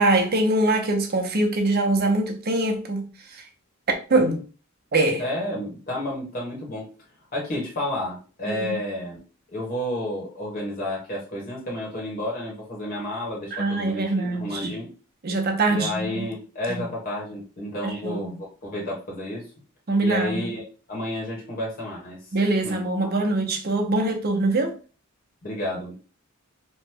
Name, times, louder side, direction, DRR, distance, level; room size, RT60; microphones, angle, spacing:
voice 1, 0.0-3.0 4.1-4.4 4.9-5.2 8.5-8.8 13.5-14.7 15.2-16.3 16.7-16.8 17.8-18.2 19.9-20.4 22.3-24.7, right 2 dB, 50° right, 0.6 m, -23 dB
voice 2, 4.1-4.4 5.2-6.9 7.3-9.2 9.5-14.9 15.7-19.5 20.0-22.4 22.6-22.8 25.4-25.9, left 1 dB, 45° left, 1.1 m, -31 dB
3.0 x 2.1 x 3.4 m
head